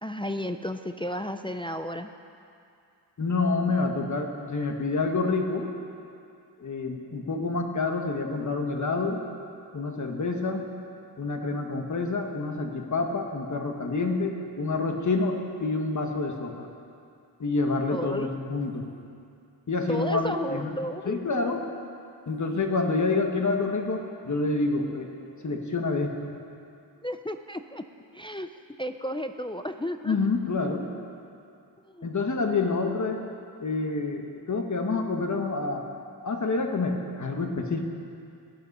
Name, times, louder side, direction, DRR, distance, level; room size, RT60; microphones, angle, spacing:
voice 1, 0.0-2.1 17.9-18.3 19.9-21.5 27.0-27.8 28.1-28.5 28.8-30.2 31.9-32.1, equal, 15° left, 7 dB, 0.3 m, -33 dB
voice 2, 3.2-5.7 6.6-9.2 9.7-10.7 11.2-16.7 17.4-18.9 19.7-20.7 21.0-21.6 22.3-25.1 25.4-26.3 30.0-30.9 32.0-33.2 33.6-35.9 36.2-37.8, left 3 dB, 40° left, 3 dB, 1.4 m, -28 dB
17.5 x 11.0 x 5.4 m, 2.5 s
wide cardioid pair, 145°, 44 cm